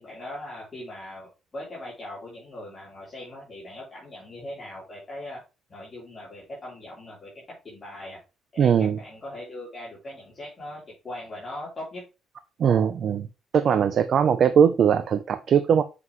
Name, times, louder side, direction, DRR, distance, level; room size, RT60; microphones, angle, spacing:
voice 1, 0.0-5.4 5.7-8.2 8.5-12.0, left 1 dB, 25° left, 3.5 m, -40 dB
voice 2, 8.6-9.0 12.6-13.3 13.5-15.8, right 7 dB, 50° right, 0.5 m, -20 dB
7.5 x 6.0 x 3.0 m
cardioid pair, 135°, 0 cm